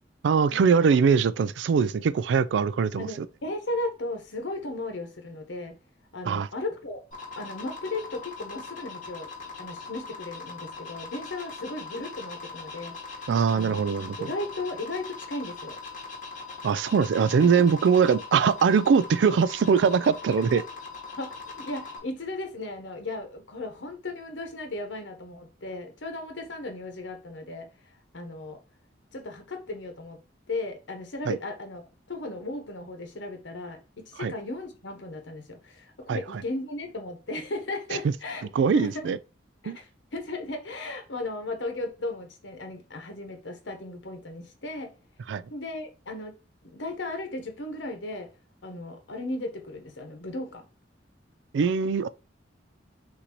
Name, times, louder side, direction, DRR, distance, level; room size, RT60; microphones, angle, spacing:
voice 1, 0.2-3.3 6.3-6.5 13.3-14.3 16.6-20.6 31.3-31.4 34.2-34.3 36.1-36.4 38.0-38.1 38.5-39.2 39.7-39.8 45.3-45.4 51.5-52.1, right 6 dB, 75° right, 0.3 m, -22 dB
voice 2, 3.0-5.8 6.1-7.0 7.4-9.3 9.6-13.2 13.5-13.8 14.2-15.8 17.4-17.7 21.2-27.7 28.1-28.6 29.1-30.2 30.5-31.8 32.1-38.5 38.7-39.1 39.6-39.9 40.1-44.9 45.5-46.3 46.6-48.3 48.6-50.6, left 2 dB, 90° left, 1.0 m, -36 dB
sound 1, 7.1-22.0, left 4 dB, 45° left, 2.0 m, -41 dB
5.8 x 2.7 x 3.0 m
head